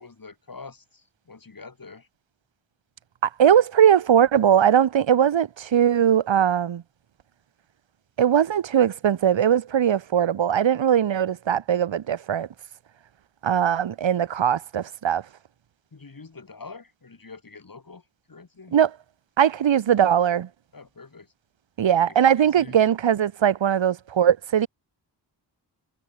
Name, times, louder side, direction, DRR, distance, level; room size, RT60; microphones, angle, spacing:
voice 1, 0.0-2.1 15.9-18.0 18.3-18.7 20.7-21.3 21.9-22.8, left 4 dB, 50° left, 7.0 m, -45 dB
voice 2, 3.2-6.8 8.2-12.5 13.4-15.2 18.7-18.9 19.4-20.5 21.8-24.7, right 9 dB, 90° right, 1.0 m, -20 dB
wide cardioid pair, 105°, 44 cm